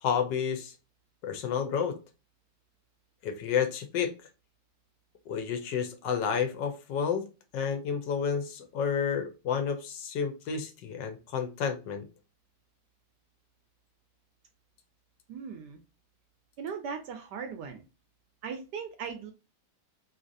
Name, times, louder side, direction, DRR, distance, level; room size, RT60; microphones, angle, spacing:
voice 1, 0.0-0.7 1.2-2.0 3.2-4.1 5.3-7.3 7.5-12.0, left 7 dB, 70° left, 6 dB, 1.2 m, -30 dB
voice 2, 15.3-15.8 16.6-17.8 18.4-19.3, right 6 dB, 70° right, 6 dB, 1.0 m, -38 dB
3.2 x 2.8 x 2.5 m, 0.30 s
omnidirectional pair, 2.1 m